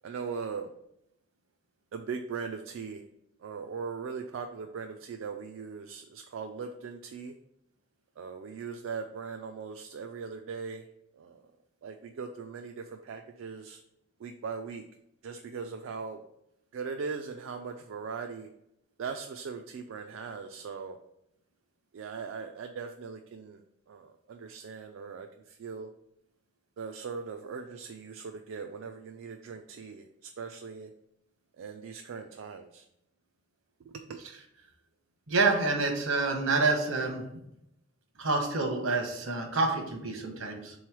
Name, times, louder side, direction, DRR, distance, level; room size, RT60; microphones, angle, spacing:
voice 1, 0.0-0.7 1.9-3.0 3.4-7.3 8.2-10.9 11.1-11.5 11.8-13.8 14.2-14.8 15.2-16.2 16.7-18.5 19.0-21.0 21.9-25.9 26.8-30.9 31.6-32.9 33.8-34.2, right 5 dB, 70° right, 5 dB, 0.3 m, -39 dB
voice 2, 35.3-37.2 38.2-40.7, right 3 dB, 85° right, 3 dB, 1.0 m, -27 dB
3.7 x 3.1 x 4.6 m, 0.80 s
head